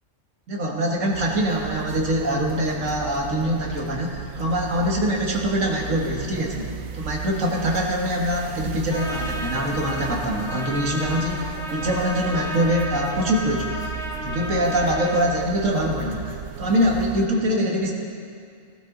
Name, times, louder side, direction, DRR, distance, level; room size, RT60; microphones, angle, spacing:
voice 1, 0.5-13.9 14.2-17.9, equal, 70° right, -1 dB, 2.1 m, -24 dB
sound 1, 1.1-17.3, right 8 dB, 85° right, 1.1 m, -35 dB
Trumpet, 8.9-15.4, equal, 5° left, 1.0 m, -33 dB
18.0 x 12.0 x 4.0 m, 2.3 s
omnidirectional pair, 1.4 m